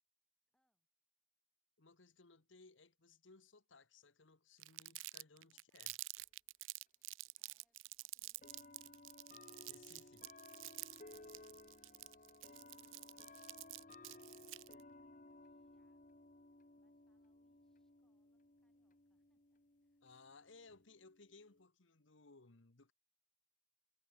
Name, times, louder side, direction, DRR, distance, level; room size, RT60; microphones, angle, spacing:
voice 1, 0.5-0.9 5.5-5.8 7.4-9.0 10.9-14.7 14.9-16.2 16.5-20.1 20.4-20.8, equal, 5° left, 6.8 m, -90 dB
voice 2, 1.8-6.0 9.7-10.3 20.0-22.9, left 3 dB, 85° left, 1.4 m, -63 dB
Crumpling crinkling, 4.6-14.8, right 19 dB, 90° right, 0.5 m, -50 dB
sound 1, 6.2-6.3 7.4-7.5 8.4-21.6, left 2 dB, 40° left, 1.4 m, -60 dB
head